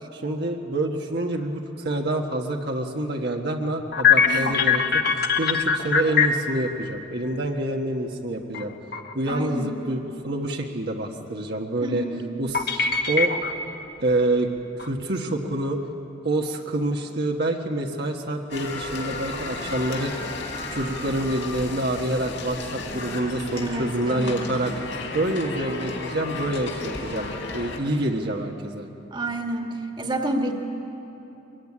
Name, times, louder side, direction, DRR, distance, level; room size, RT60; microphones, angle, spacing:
voice 1, 0.1-8.7 9.1-12.0 12.4-13.3 14.0-14.5 14.8-15.8 16.2-20.1 20.7-24.9 25.1-28.9, right 1 dB, 55° right, 1 dB, 1.4 m, -27 dB
sound 1, 3.8-6.6 8.5-8.6 8.9-9.3 12.5-13.7 14.1-14.2 14.8-15.3, left 6 dB, 55° left, 1.5 m, -21 dB
voice 2, 4.3-4.6 9.3-9.7 11.8-12.2 23.6-24.8 29.1-30.5, right 1 dB, 25° right, 3 dB, 1.8 m, -30 dB
sound 2, 18.5-27.8, left 2 dB, 75° left, 3.8 m, -34 dB
24.0 x 21.0 x 9.8 m, 3.0 s
head